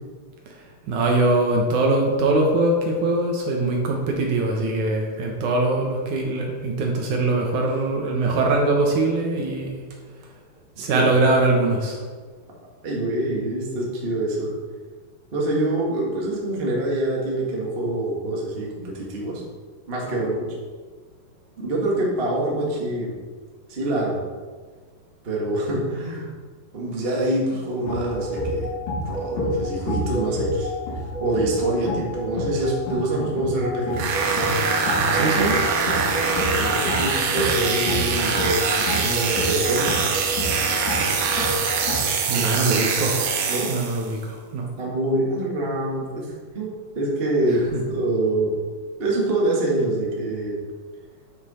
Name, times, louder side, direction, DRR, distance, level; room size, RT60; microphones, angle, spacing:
voice 1, 0.5-9.8 10.8-12.0 35.1-35.6 42.2-43.2 43.7-44.7 47.7-47.8, right 2 dB, 70° right, 0 dB, 2.0 m, -22 dB
voice 2, 12.8-14.5 15.3-19.4 19.9-20.5 21.6-23.1 23.7-24.2 25.2-26.3 26.7-28.7 29.0-30.7 31.2-34.0 36.5-39.9 42.3-42.9 43.5-43.7 44.8-46.3 46.5-48.5 49.0-50.6, right 1 dB, 50° right, -3 dB, 0.7 m, -25 dB
sound 1, 27.9-42.0, left 1 dB, 90° left, 4.3 m, -28 dB
sound 2, 33.9-44.1, right 5 dB, 85° right, 2.8 m, -23 dB
9.9 x 6.0 x 4.2 m, 1.5 s
omnidirectional pair, 4.2 m